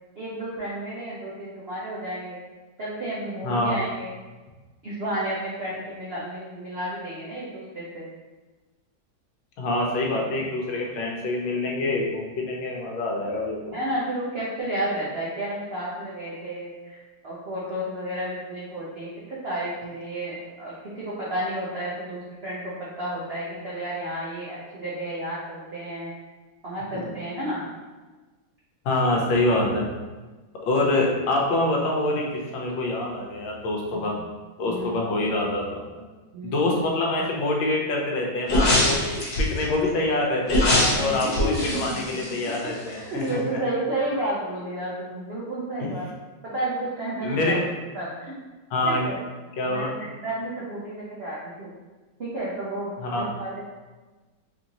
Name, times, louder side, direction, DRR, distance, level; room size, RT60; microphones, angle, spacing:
voice 1, 0.2-2.4 2.8-4.1 4.8-8.0 13.7-26.1 26.6-27.6 33.9-34.0 34.7-35.0 36.3-36.7 41.0-42.0 42.3-42.4 42.8-46.1 46.4-48.4 48.8-49.2 49.6-51.7 52.2-53.7, right 1 dB, 85° right, -7 dB, 0.5 m, -32 dB
voice 2, 3.4-3.8 9.6-13.6 28.8-29.9 30.6-32.2 32.5-34.1 34.6-35.8 36.4-39.0 39.4-43.2 47.2-47.6 48.7-49.0 49.6-49.9 53.0-53.2, left 2 dB, 80° left, -1 dB, 1.5 m, -25 dB
sound 1, 38.5-39.6 40.5-42.9 43.2-43.3, left 1 dB, 40° left, 0.7 m, -23 dB
4.2 x 2.6 x 2.9 m, 1.3 s
omnidirectional pair, 2.1 m